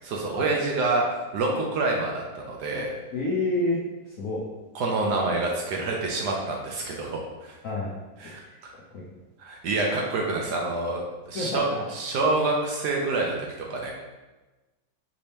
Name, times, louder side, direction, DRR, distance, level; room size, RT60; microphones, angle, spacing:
voice 1, 0.0-1.1 1.3-2.9 4.7-7.6 8.2-8.4 9.4-11.0 11.3-13.9, right 3 dB, 70° right, 0 dB, 1.1 m, -27 dB
voice 2, 3.1-4.4 7.6-7.9 8.2-9.0 11.3-11.8, left 2 dB, 65° left, -5 dB, 0.8 m, -29 dB
5.3 x 2.8 x 3.4 m, 1.1 s
omnidirectional pair, 2.1 m